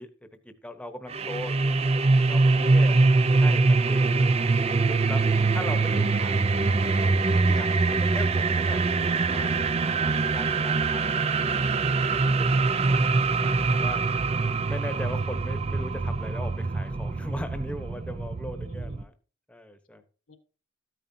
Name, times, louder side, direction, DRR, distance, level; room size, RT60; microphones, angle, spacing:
voice 1, 0.0-3.0 3.4-4.1 4.8-5.2 5.5-6.5 6.7-9.6 9.9-11.6 11.9-12.5 12.8-13.0 13.4-14.0 14.7-19.1 19.5-20.0, left 1 dB, 5° left, 8 dB, 1.0 m, -39 dB
sound 1, 1.1-19.0, right 3 dB, 30° right, 0.4 m, -23 dB
voice 2, 2.6-2.9 4.1-4.4 7.5-7.7 14.1-14.7 18.5-19.1 20.3-20.4, left 2 dB, 85° left, 8 dB, 1.4 m, -50 dB
14.0 x 9.0 x 2.8 m, 0.38 s
head